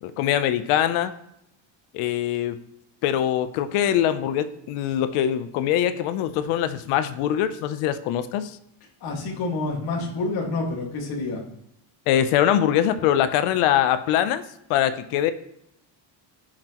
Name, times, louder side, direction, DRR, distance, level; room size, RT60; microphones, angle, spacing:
voice 1, 0.0-1.1 1.9-2.6 3.0-8.6 12.1-14.4 14.7-15.3, left 10 dB, 90° left, 12 dB, 0.8 m, -23 dB
voice 2, 9.0-11.4, left 3 dB, 45° left, -2 dB, 2.0 m, -28 dB
16.5 x 5.9 x 3.0 m, 0.80 s
cardioid pair, 175°, 49 cm